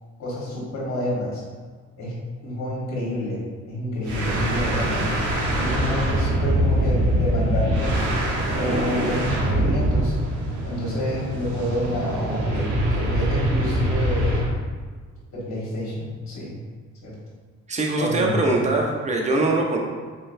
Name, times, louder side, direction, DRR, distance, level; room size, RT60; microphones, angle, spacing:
voice 1, 0.2-1.4 2.0-2.1 2.4-5.1 5.5-8.0 8.5-10.1 10.6-14.4 15.3-16.5 17.0-17.1 18.0-18.3 18.6-18.7, left 1 dB, 65° left, -6 dB, 1.4 m, -28 dB
sound 1, 4.0-14.6, right 1 dB, 75° right, 0.9 m, -23 dB
voice 2, 17.7-19.8, right 2 dB, 25° right, 0 dB, 0.7 m, -22 dB
4.3 x 3.7 x 2.6 m, 1.5 s
cardioid pair, 90°, 30 cm